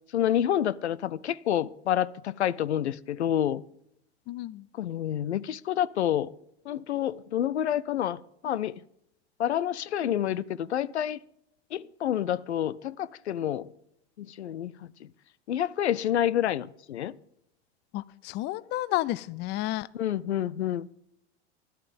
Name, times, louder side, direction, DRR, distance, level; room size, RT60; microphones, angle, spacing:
voice 1, 0.1-3.6 4.8-6.3 6.7-8.2 8.4-8.7 9.4-11.2 11.7-13.7 14.2-14.7 15.5-17.1 19.9-20.9, left 11 dB, 80° left, 0.6 m, -28 dB
voice 2, 4.3-4.6 17.9-19.9, left 16 dB, 35° left, 0.4 m, -31 dB
12.5 x 11.0 x 5.3 m
hypercardioid pair, 90°, 33 cm